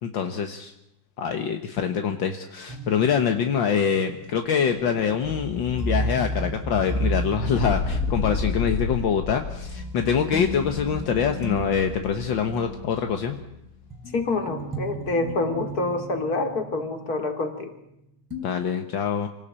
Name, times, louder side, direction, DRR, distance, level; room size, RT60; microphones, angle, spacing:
voice 1, 0.0-0.7 1.2-13.4 18.4-19.3, left 7 dB, 50° left, 6 dB, 1.5 m, -25 dB
sound 1, 2.7-17.9 18.3-18.5, equal, 5° right, 4.1 m, -34 dB
Explosion, 4.2-9.9, left 6 dB, 80° left, 0.7 m, -31 dB
voice 2, 14.1-17.7, left 2 dB, 30° left, 6 dB, 2.8 m, -27 dB
26.5 x 18.5 x 8.8 m, 0.85 s
omnidirectional pair, 3.5 m